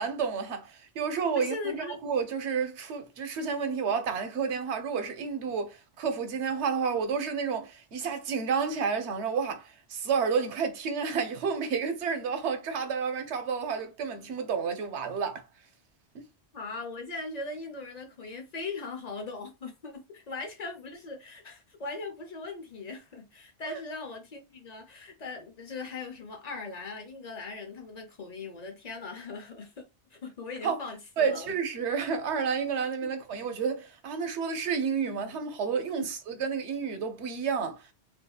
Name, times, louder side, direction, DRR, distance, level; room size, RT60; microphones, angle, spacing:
voice 1, 0.0-15.5 16.1-16.3 23.7-23.8 30.6-30.8 31.2-37.9, right 6 dB, 80° right, 1.0 m, -30 dB
voice 2, 1.3-2.0 16.5-29.8 30.1-31.5 33.0-33.1 36.0-36.1, left 3 dB, 40° left, 0.8 m, -39 dB
2.7 x 2.7 x 2.3 m
omnidirectional pair, 1.1 m